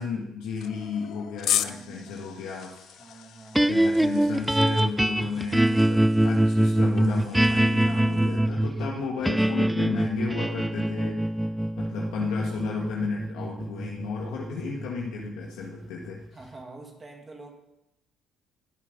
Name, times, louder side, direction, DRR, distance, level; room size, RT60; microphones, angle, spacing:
voice 1, 0.0-2.8 3.7-11.2 11.8-16.2, left 5 dB, 85° left, -2 dB, 1.8 m, -33 dB
sound 1, 0.6-4.8, left 11 dB, 65° left, 0.6 m, -34 dB
voice 2, 1.6-2.4 3.0-3.8 16.3-17.5, right 3 dB, 25° right, 2 dB, 1.9 m, -47 dB
sound 2, 2.5-8.4, left 2 dB, 20° left, 4.3 m, -58 dB
sound 3, 3.5-15.8, right 1 dB, 5° right, 0.4 m, -24 dB
20.5 x 7.7 x 5.3 m, 0.90 s
cardioid pair, 115°, 0 cm